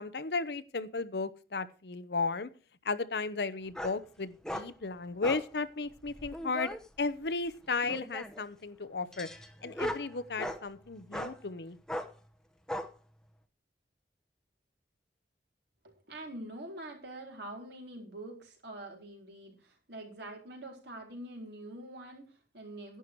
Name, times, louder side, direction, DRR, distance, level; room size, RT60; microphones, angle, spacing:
voice 1, 0.0-2.5 2.8-9.3 9.6-11.8, left 4 dB, 70° left, 14 dB, 0.8 m, -35 dB
sound 1, 3.7-4.0 4.4-4.7 5.2-5.5 6.0-6.8 7.8-8.4 9.1-10.6 11.1-11.3 11.9-12.1 12.7-12.9, equal, 5° left, 0.9 m, -38 dB
voice 2, 15.8-23.0, right 1 dB, 75° right, 1 dB, 4.2 m, -45 dB
11.0 x 10.0 x 4.7 m, 0.35 s
head